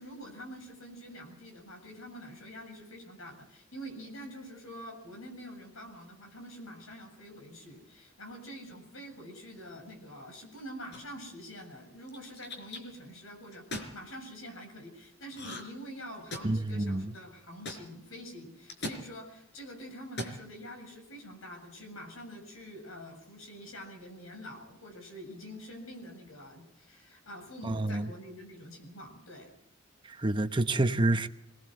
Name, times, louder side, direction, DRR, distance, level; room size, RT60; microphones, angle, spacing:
voice 1, 0.0-29.5, equal, 80° left, 7.4 m, -46 dB
sound 1, 10.9-11.3 12.1-12.8 13.5-13.9 15.3-15.8 16.1-16.7 17.7-17.8 18.7-19.0 20.0-20.4, left 1 dB, 55° left, 4.3 m, -38 dB
voice 2, 16.4-17.1 27.6-28.1 30.0-31.3, right 2 dB, 25° right, 0.8 m, -28 dB
24.5 x 19.5 x 7.7 m
head